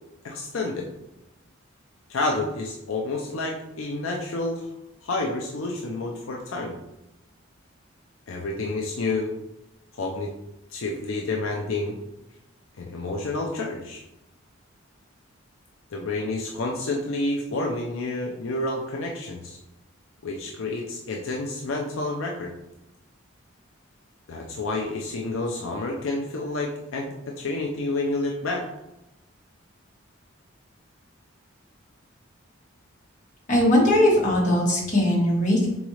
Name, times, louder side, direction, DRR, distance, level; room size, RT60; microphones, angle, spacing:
voice 1, 0.2-0.9 2.1-4.7 5.0-6.8 8.3-9.3 9.9-10.3 10.7-12.0 12.8-14.0 15.9-19.6 20.2-22.5 24.3-28.7, left 2 dB, 75° left, 0 dB, 0.5 m, -29 dB
voice 2, 33.5-35.7, left 1 dB, 35° left, -4 dB, 1.3 m, -20 dB
4.0 x 3.6 x 3.2 m, 0.91 s
head